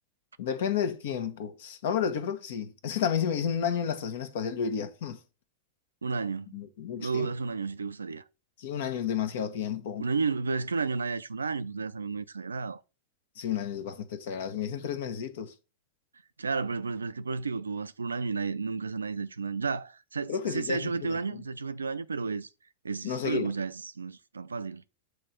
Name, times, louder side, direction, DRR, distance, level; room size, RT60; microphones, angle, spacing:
voice 1, 0.4-5.2 6.5-7.3 8.6-10.1 13.4-15.5 20.3-21.2 23.0-23.5, left 8 dB, 65° left, 1.1 m, -31 dB
voice 2, 6.0-6.7 7.0-8.2 10.0-12.8 16.4-22.5 22.8-24.8, right 4 dB, 90° right, 0.4 m, -32 dB
7.8 x 3.2 x 5.1 m
hypercardioid pair, 100°, 0 cm